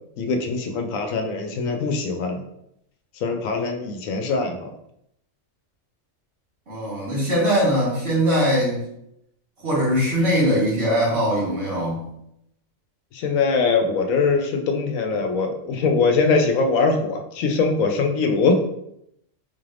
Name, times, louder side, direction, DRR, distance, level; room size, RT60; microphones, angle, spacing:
voice 1, 0.2-2.4 3.2-4.7 13.1-18.6, left 4 dB, 85° left, 4 dB, 1.0 m, -22 dB
voice 2, 6.7-8.8 9.6-12.0, equal, 55° right, -6 dB, 1.6 m, -21 dB
4.0 x 3.3 x 2.5 m, 0.77 s
omnidirectional pair, 1.4 m